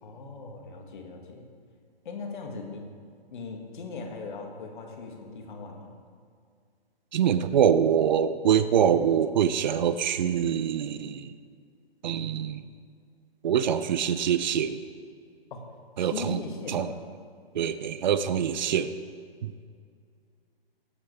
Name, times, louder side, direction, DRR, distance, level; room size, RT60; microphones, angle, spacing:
voice 1, 0.0-1.5 2.1-2.8 3.3-6.0 15.5-15.6 16.0-17.0, left 4 dB, 50° left, 2 dB, 2.0 m, -39 dB
voice 2, 7.1-11.3 12.0-12.6 13.4-14.8 16.0-16.4 16.7-16.9 17.5-18.9 19.4-19.5, right 8 dB, 50° right, 13 dB, 0.6 m, -24 dB
18.0 x 8.1 x 3.4 m, 2.1 s
hypercardioid pair, 150°, 31 cm